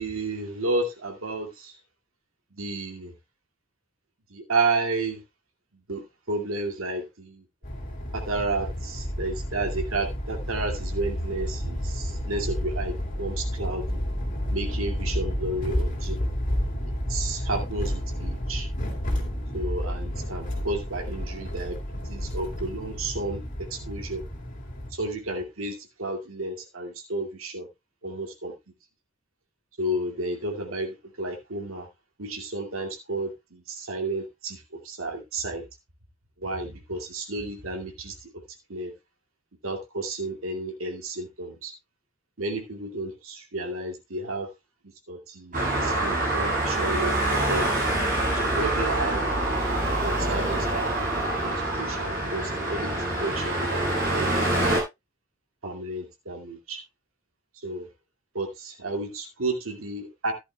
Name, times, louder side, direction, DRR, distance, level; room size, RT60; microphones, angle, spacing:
voice 1, 0.0-1.7 2.5-3.1 4.3-5.2 5.9-7.4 8.1-14.0 14.5-16.2 16.8-18.7 19.5-21.8 22.1-24.3 24.9-27.7 28.0-28.5 29.8-31.9 32.2-35.6 36.4-38.3 38.7-38.9 39.6-41.7 42.4-44.5 45.1-45.5 45.8-47.8 48.3-49.3 50.0-51.0 51.4-52.9 53.2-54.3 55.6-56.8 57.6-57.9 58.3-60.3, right 2 dB, 80° right, 2.3 m, -32 dB
sound 1, 7.6-24.9, equal, 40° left, 3.2 m, -31 dB
Traffic noise roadway noise, 45.5-54.8, right 1 dB, 45° right, 7.4 m, -25 dB
14.5 x 11.0 x 2.3 m
head